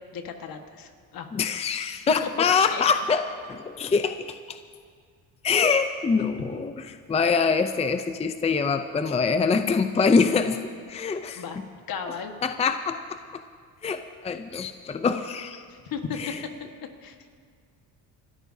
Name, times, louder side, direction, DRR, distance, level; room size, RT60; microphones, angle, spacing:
voice 1, 0.1-1.3 2.2-2.3 2.7-2.8 11.3-11.6 11.9-12.3 15.7-16.2 17.0-17.3, left 7 dB, 60° left, 5 dB, 1.6 m, -35 dB
voice 2, 1.3-4.6 5.4-10.6 10.9-11.4 12.4-13.2 13.8-15.6 16.2-16.4, left 5 dB, 15° left, 9 dB, 0.5 m, -24 dB
27.5 x 13.5 x 2.8 m, 2.1 s
cardioid pair, 100°, 38 cm